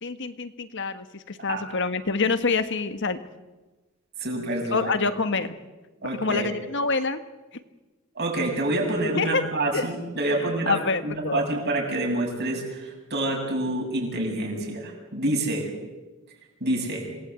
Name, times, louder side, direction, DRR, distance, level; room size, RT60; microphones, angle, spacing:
voice 1, 0.0-3.2 4.7-5.6 6.2-7.2 7.5-7.6 9.2-9.4 9.7-9.8 10.7-11.4, left 4 dB, 60° left, 10 dB, 1.5 m, -26 dB
voice 2, 4.2-4.9 6.0-6.5 8.2-10.8 11.0-15.7 16.6-17.1, right 2 dB, 50° right, 1 dB, 7.3 m, -27 dB
27.0 x 19.0 x 8.4 m, 1.2 s
head